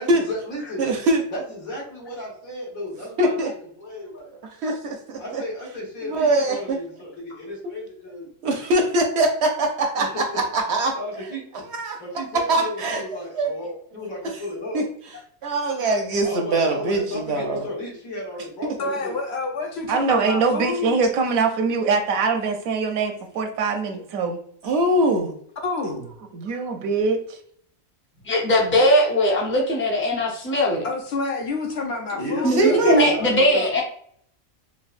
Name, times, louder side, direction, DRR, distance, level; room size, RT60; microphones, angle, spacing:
voice 1, 0.0-0.9 1.3-4.3 5.2-8.3 10.0-10.4 10.9-11.4 12.0-14.8 16.2-19.1 24.9-25.0 28.7-28.9 29.3-29.4 32.1-33.8, left 1 dB, 90° left, -4 dB, 1.8 m, -34 dB
voice 2, 0.8-1.2 3.2-3.5 4.6-5.4 6.0-6.8 8.4-10.9 11.7-12.0 12.5-13.0 13.4-13.5 14.7-14.8 15.4-17.7 24.6-25.3 32.5-33.1, right 2 dB, 65° right, 3 dB, 0.7 m, -22 dB
voice 3, 18.8-21.0 25.6-26.1 30.8-32.7, left 3 dB, 60° left, 2 dB, 0.8 m, -28 dB
voice 4, 19.9-24.4 26.3-27.4, right 4 dB, 85° right, 5 dB, 1.1 m, -23 dB
voice 5, 28.2-30.9 32.4-33.8, equal, 20° left, -1 dB, 0.3 m, -19 dB
4.5 x 2.2 x 2.4 m, 0.62 s
omnidirectional pair, 1.4 m